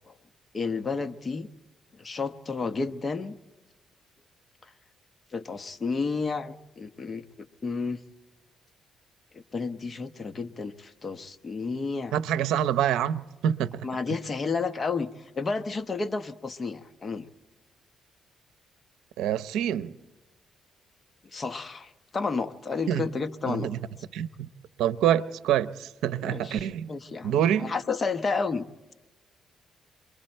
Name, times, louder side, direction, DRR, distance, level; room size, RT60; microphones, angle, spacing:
voice 1, 0.5-1.5 2.0-3.4 4.6-4.7 5.3-7.2 7.6-8.0 9.3-12.1 13.8-17.3 21.3-23.7 26.2-28.6, left 4 dB, 35° left, 1.0 m, -31 dB
voice 2, 12.1-13.9 19.2-19.9 22.9-23.1 23.5-23.8 24.1-24.5 24.8-26.9 27.2-27.7, right 10 dB, 85° right, 0.6 m, -26 dB
27.5 x 22.0 x 4.4 m
cardioid pair, 90°, 0 cm